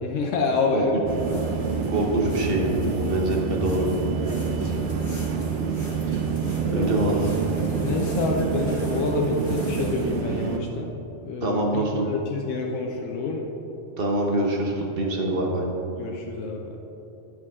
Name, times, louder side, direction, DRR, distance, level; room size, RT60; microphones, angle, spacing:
voice 1, 0.0-0.9 1.2-1.7 4.4-4.6 6.6-7.1 7.8-10.9 11.2-13.5 16.0-16.8, left 3 dB, 80° left, 0 dB, 1.0 m, -28 dB
sound 1, 1.1-10.2, left 1 dB, 45° left, 2.1 m, -42 dB
sound 2, 1.1-10.6, right 6 dB, 70° right, 0.9 m, -27 dB
voice 2, 1.9-3.9 6.1-6.2 6.7-7.3 11.4-12.1 14.0-15.6, right 1 dB, 50° right, 0 dB, 1.2 m, -25 dB
9.1 x 6.4 x 3.6 m, 3.0 s
omnidirectional pair, 1.3 m